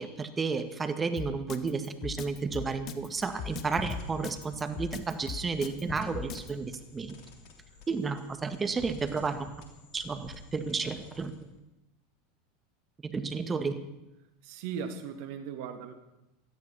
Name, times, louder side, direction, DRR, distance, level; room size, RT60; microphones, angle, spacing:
voice 1, 0.0-7.2 7.9-9.5 9.9-11.3 13.0-13.8, right 4 dB, 20° right, 8 dB, 1.9 m, -32 dB
Drum kit, 1.2-6.5, left 7 dB, 45° left, 1.4 m, -39 dB
sound 1, 3.2-11.6, left 4 dB, 60° left, 3.1 m, -48 dB
voice 2, 14.4-15.9, right 7 dB, 60° right, 8 dB, 2.0 m, -38 dB
17.5 x 13.0 x 5.7 m, 0.93 s
hypercardioid pair, 90°, 0 cm